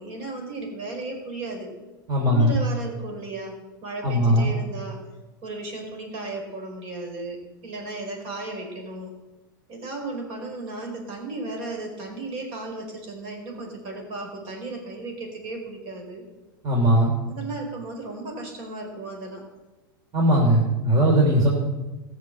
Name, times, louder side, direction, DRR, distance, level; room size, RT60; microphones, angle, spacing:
voice 1, 0.0-1.7 2.3-5.0 5.4-9.1 9.7-16.2 17.3-19.5, right 2 dB, 50° right, 2 dB, 4.9 m, -35 dB
voice 2, 2.1-2.6 4.0-4.5 16.6-17.1 20.1-21.5, right 1 dB, 30° right, -2 dB, 3.4 m, -19 dB
15.0 x 7.0 x 7.8 m, 1.1 s
hypercardioid pair, 105°, 12 cm